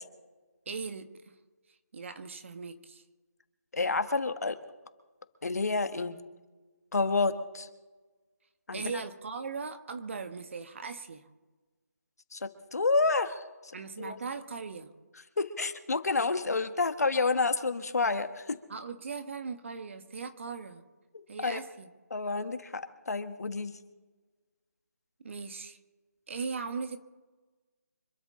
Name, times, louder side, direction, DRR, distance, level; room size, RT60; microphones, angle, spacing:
voice 1, 0.7-1.1 1.9-3.0 8.7-11.3 13.7-14.9 18.7-20.8 21.3-21.9 25.2-25.8 26.3-27.0, right 5 dB, 45° right, 9 dB, 1.4 m, -39 dB
voice 2, 3.7-4.6 5.4-6.2 6.9-7.7 8.7-8.8 12.3-13.4 14.0-14.2 15.4-18.6 21.1-21.6 22.1-23.8, left 3 dB, 70° left, 10 dB, 1.5 m, -29 dB
26.0 x 12.5 x 3.7 m, 1.3 s
figure-of-eight pair, 160°, 9 cm